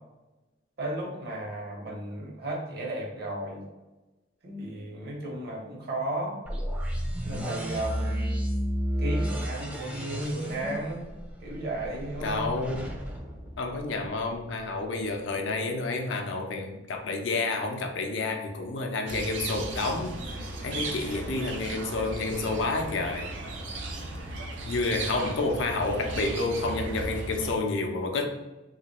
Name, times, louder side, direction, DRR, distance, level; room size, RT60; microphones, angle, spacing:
voice 1, 0.8-3.6 4.4-6.4 7.3-8.4 9.0-11.1 11.4-12.6, right 1 dB, 60° right, -2 dB, 0.9 m, -34 dB
sound 1, 6.5-14.3, equal, 5° right, 0.4 m, -32 dB
voice 2, 12.2-13.0 13.6-23.3 24.3-24.4 24.6-28.3, left 3 dB, 85° left, 3 dB, 0.5 m, -30 dB
sound 2, 19.1-27.5, right 2 dB, 75° right, 0.4 m, -36 dB
2.9 x 2.4 x 2.9 m, 1.1 s
head